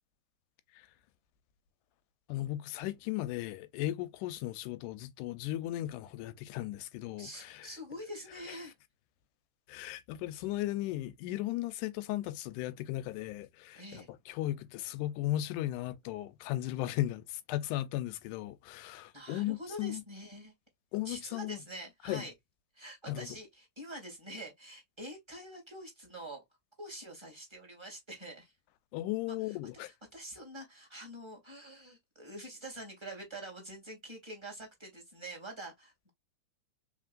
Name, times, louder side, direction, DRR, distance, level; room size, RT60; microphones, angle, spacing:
voice 1, 2.3-7.7 8.5-8.6 9.7-20.0 20.9-21.6 22.0-22.3 23.1-23.4 28.9-29.9, left 15 dB, 85° left, 2.0 m, -36 dB
voice 2, 7.2-8.7 13.7-14.1 19.1-20.5 21.0-22.3 22.7-26.4 26.8-28.5 29.3-29.6 30.1-36.1, right 1 dB, 10° right, 1.9 m, -46 dB
4.4 x 3.8 x 2.4 m
omnidirectional pair, 3.7 m